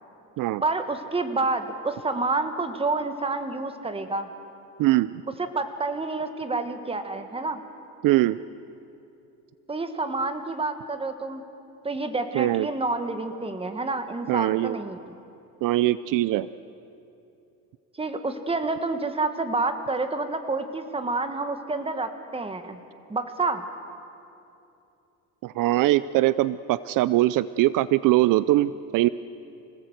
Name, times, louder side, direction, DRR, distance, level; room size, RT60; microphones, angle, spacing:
voice 1, 0.6-4.3 5.4-7.6 9.7-11.4 11.8-15.1 18.0-22.8 23.1-23.7, right 3 dB, 15° right, 8 dB, 1.6 m, -28 dB
voice 2, 4.8-5.1 8.0-8.4 12.3-12.7 14.3-14.8 15.6-16.5 25.4-29.1, right 16 dB, 65° right, 16 dB, 0.5 m, -22 dB
26.0 x 18.5 x 8.0 m, 2.8 s
cardioid pair, 125°, 34 cm